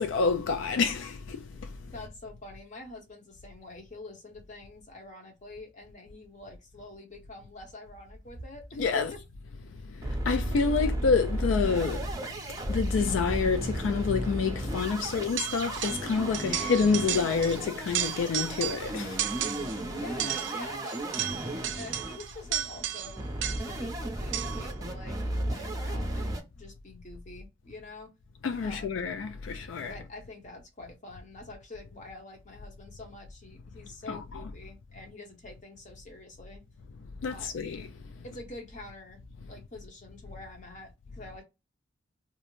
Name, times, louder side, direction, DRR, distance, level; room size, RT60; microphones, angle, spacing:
voice 1, 0.0-1.8 8.8-9.1 9.8-12.1 12.6-19.3 19.6-19.7 28.4-29.9 34.1-34.2 37.2-37.9, left 5 dB, 80° left, 0.3 m, -28 dB
voice 2, 1.9-9.2 10.5-11.0 19.7-23.3 23.6-25.2 25.4-28.1 28.6-28.9 29.9-36.7 37.3-37.5 38.2-39.2 39.5-41.4, left 2 dB, 40° left, 0.8 m, -46 dB
sound 1, 7.9-8.8 9.2-9.3 9.5-9.6 10.0-26.4, right 1 dB, 20° right, 0.6 m, -34 dB
sound 2, 15.4-16.1 16.3-17.6 17.9-18.9 19.2-19.8 20.2-23.8 24.3-24.7, right 11 dB, 70° right, 0.4 m, -33 dB
2.4 x 2.0 x 3.0 m
head